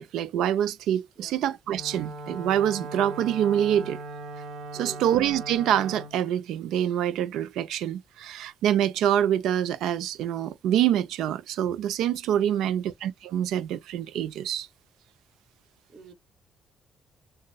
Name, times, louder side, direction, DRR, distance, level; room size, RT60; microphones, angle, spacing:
voice 1, 0.0-4.0 4.8-14.7, right 10 dB, 85° right, 0.7 m, -26 dB
voice 2, 1.2-1.5 4.7-5.2 12.5-12.9 15.9-16.1, right 4 dB, 40° right, 2.1 m, -46 dB
Wind instrument woodwind instrument, 1.7-6.2, right 3 dB, 65° right, 1.6 m, -38 dB
6.6 x 2.5 x 2.4 m
cardioid pair, 90°, 0 cm